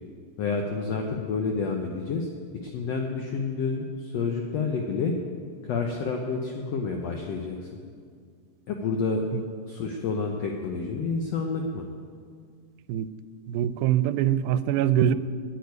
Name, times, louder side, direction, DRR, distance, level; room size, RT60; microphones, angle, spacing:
voice 1, 0.4-2.3 2.6-5.1 5.6-7.8 8.7-9.2 9.6-11.8, left 4 dB, 80° left, 2 dB, 1.4 m, -29 dB
voice 2, 13.5-15.2, right 10 dB, 90° right, 14 dB, 2.3 m, -23 dB
9.5 x 9.2 x 9.4 m, 2.1 s
omnidirectional pair, 4.1 m